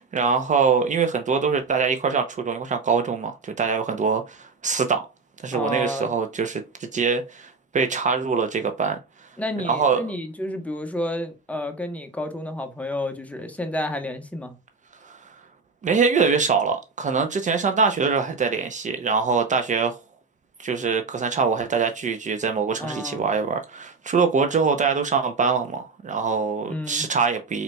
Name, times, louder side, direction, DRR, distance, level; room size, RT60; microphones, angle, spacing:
voice 1, 0.0-5.1 5.4-9.3 9.7-10.0 15.0-15.2 15.8-20.0 20.6-27.6, right 5 dB, 40° right, 0.6 m, -23 dB
voice 2, 5.5-6.1 9.4-14.5 22.8-23.2 26.7-27.1, left 1 dB, 5° left, 1.0 m, -30 dB
4.2 x 3.9 x 2.2 m
cardioid pair, 90°, 20 cm